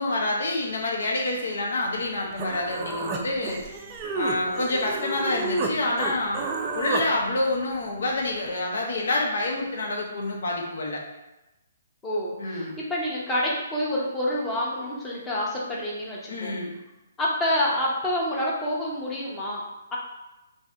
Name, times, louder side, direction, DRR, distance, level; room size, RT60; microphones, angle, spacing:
voice 1, 0.0-3.6 4.1-6.4 6.7-11.0 12.4-12.7 16.3-16.7, left 2 dB, 75° left, -1 dB, 0.9 m, -27 dB
Human voice, 2.4-5.7 6.0-7.1, right 3 dB, 25° right, 0.4 m, -30 dB
voice 2, 12.0-16.6 17.2-19.6 19.9-20.0, left 1 dB, 10° left, -5 dB, 0.7 m, -28 dB
2.7 x 2.6 x 3.4 m, 0.98 s
hypercardioid pair, 150°, 0 cm